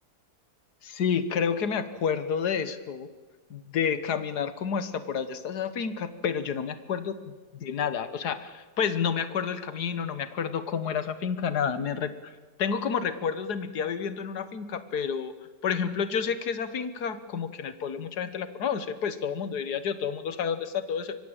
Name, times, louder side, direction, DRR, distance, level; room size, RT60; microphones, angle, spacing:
voice 1, 0.8-3.1 3.5-12.3 12.6-15.3 15.6-21.1, left 7 dB, 70° left, 12 dB, 1.8 m, -30 dB
24.5 x 23.0 x 8.9 m, 1.3 s
omnidirectional pair, 1.8 m